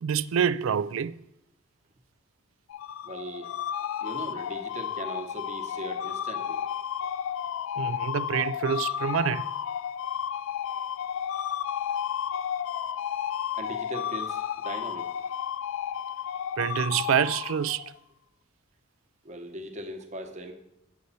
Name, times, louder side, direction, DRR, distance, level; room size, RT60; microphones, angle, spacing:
voice 1, 0.0-1.2 7.8-9.5 16.6-17.8, right 8 dB, 80° right, 0.4 m, -27 dB
sound 1, 2.7-18.0, left 9 dB, 90° left, 0.3 m, -32 dB
voice 2, 3.0-3.5 4.0-6.6 13.5-15.1 19.2-20.5, right 1 dB, 35° right, 1.0 m, -39 dB
7.9 x 7.9 x 4.1 m
head